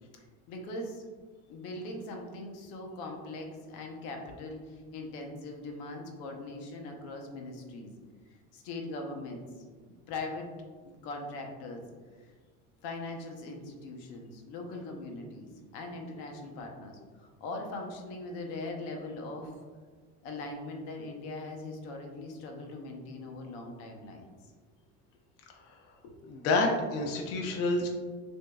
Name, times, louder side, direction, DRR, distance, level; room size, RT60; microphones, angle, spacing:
voice 1, 0.5-1.0 1.5-7.9 8.5-9.4 9.8-10.5 10.8-11.8 12.8-19.5 20.2-24.3 26.0-26.1 26.9-27.0, left 2 dB, 75° left, 2 dB, 0.9 m, -41 dB
voice 2, 26.3-27.9, left 2 dB, 50° left, 1 dB, 0.5 m, -28 dB
6.3 x 2.7 x 2.3 m, 1.5 s
supercardioid pair, 115°, 32 cm